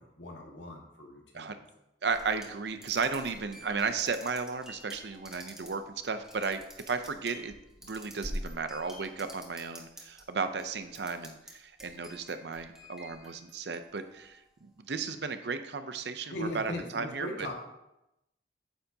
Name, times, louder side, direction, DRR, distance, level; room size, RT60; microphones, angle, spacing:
voice 1, 0.0-1.6 16.2-17.5, left 1 dB, 85° left, 0 dB, 1.7 m, -39 dB
voice 2, 2.0-7.5 7.8-17.3, right 4 dB, 70° right, 9 dB, 0.6 m, -34 dB
sound 1, 2.1-10.2 10.6-11.5 11.8-14.2, equal, 5° right, 1.2 m, -46 dB
9.2 x 6.8 x 2.8 m, 0.89 s
head